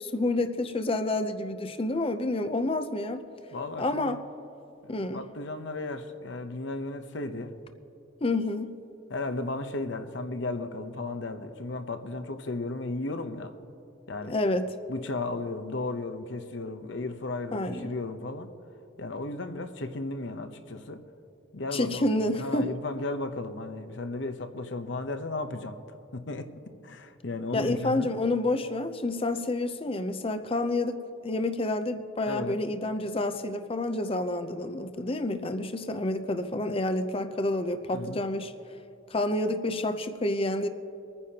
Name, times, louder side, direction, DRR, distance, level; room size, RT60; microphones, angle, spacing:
voice 1, 0.0-3.2 3.8-4.2 4.9-5.2 8.2-8.7 14.2-14.7 17.5-17.9 21.7-22.7 27.5-38.5 39.1-40.7, left 2 dB, 25° left, 8 dB, 0.6 m, -29 dB
voice 2, 3.5-4.2 4.8-7.5 9.1-13.5 14.1-14.4 14.9-18.5 19.0-21.0 21.5-25.8 26.1-26.5 26.8-28.1 32.3-32.6 37.9-38.2, left 2 dB, 60° left, 8 dB, 0.8 m, -35 dB
25.0 x 9.8 x 2.9 m, 2.8 s
head